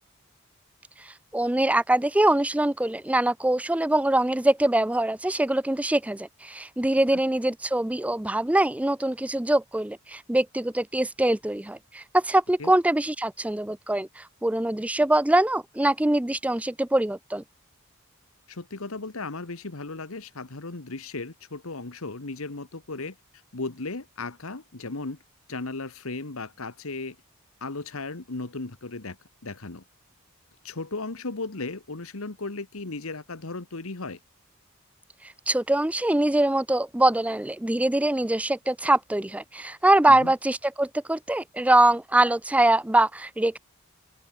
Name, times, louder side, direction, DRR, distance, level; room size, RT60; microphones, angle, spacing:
voice 1, 1.0-17.4 35.2-43.6, right 1 dB, 5° right, 0.4 m, -23 dB
voice 2, 18.5-23.1 23.5-25.2 25.5-27.2 27.6-29.2 29.4-29.8 30.6-34.2 40.1-40.3, left 3 dB, 75° left, 1.5 m, -36 dB
head